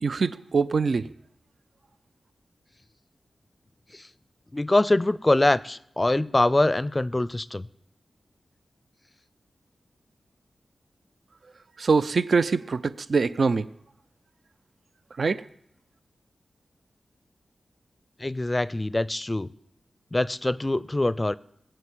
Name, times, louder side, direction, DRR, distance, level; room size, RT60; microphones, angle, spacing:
voice 1, 0.0-1.0 11.8-13.7 15.2-15.4, right 4 dB, 65° right, 15 dB, 0.5 m, -23 dB
voice 2, 4.5-7.7 18.2-19.5 20.1-21.3, left 2 dB, 25° left, 19 dB, 0.5 m, -24 dB
20.0 x 7.8 x 8.6 m, 0.76 s
wide cardioid pair, 75°, 0 cm